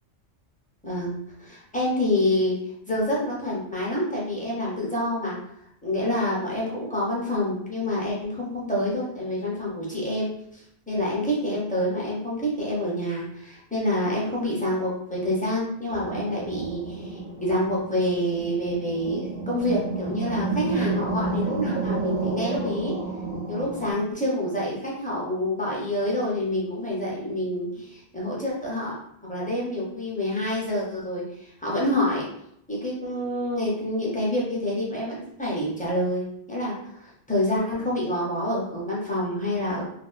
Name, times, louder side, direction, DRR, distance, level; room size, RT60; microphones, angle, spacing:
voice 1, 0.8-2.6 2.9-5.4 5.8-22.9 23.5-32.2 32.7-39.8, left 1 dB, 10° left, -6 dB, 0.4 m, -27 dB
sound 1, 15.9-23.9, right 3 dB, 85° right, 1.0 m, -31 dB
2.5 x 2.2 x 2.4 m, 0.74 s
omnidirectional pair, 1.2 m